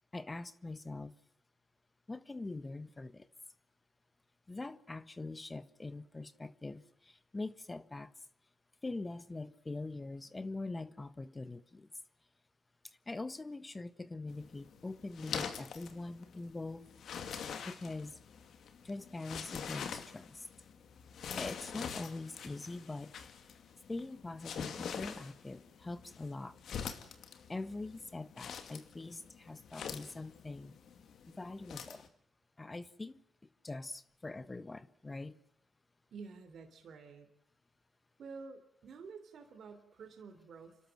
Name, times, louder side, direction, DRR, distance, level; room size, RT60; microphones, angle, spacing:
voice 1, 0.1-1.1 2.1-3.3 4.5-8.1 8.8-11.9 12.8-16.9 17.6-18.2 18.8-20.5 21.4-23.3 23.9-26.6 27.5-30.8 31.2-32.1 32.6-33.2 33.6-35.4, left 2 dB, 25° left, 1.3 m, -43 dB
sound 1, 14.3-32.1, left 7 dB, 75° left, 2.4 m, -45 dB
voice 2, 36.1-37.3 38.2-40.8, right 5 dB, 70° right, 3.4 m, -50 dB
28.5 x 12.5 x 8.9 m
cardioid pair, 70°, 0 cm